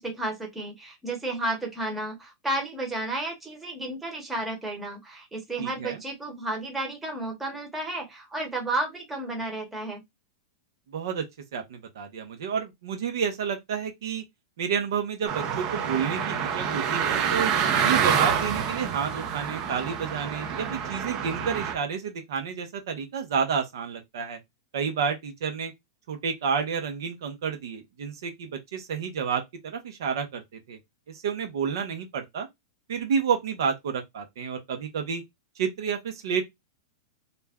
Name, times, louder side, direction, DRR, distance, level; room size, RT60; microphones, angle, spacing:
voice 1, 0.0-10.0, right 2 dB, 10° right, 1.0 m, -32 dB
voice 2, 5.6-6.0 10.9-11.2 11.5-14.2 14.6-17.5 17.8-24.4 24.7-25.7 26.1-30.8 31.1-32.5 32.9-35.2 35.6-36.4, right 6 dB, 75° right, 0.8 m, -30 dB
sound 1, 15.3-21.7, right 7 dB, 35° right, 0.6 m, -27 dB
2.4 x 2.1 x 3.5 m
hypercardioid pair, 140°, 2 cm